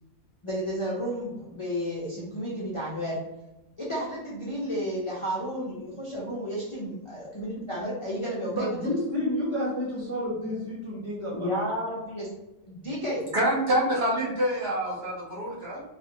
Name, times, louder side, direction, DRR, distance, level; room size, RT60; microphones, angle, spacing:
voice 1, 0.4-3.2 3.8-8.9 11.3-12.3 12.6-13.3, equal, 50° left, -6 dB, 0.3 m, -32 dB
voice 2, 8.5-11.7, left 1 dB, 15° left, -7 dB, 0.7 m, -30 dB
voice 3, 13.3-15.8, right 1 dB, 55° right, -4 dB, 0.8 m, -26 dB
3.2 x 2.5 x 2.6 m, 1.0 s
omnidirectional pair, 1.5 m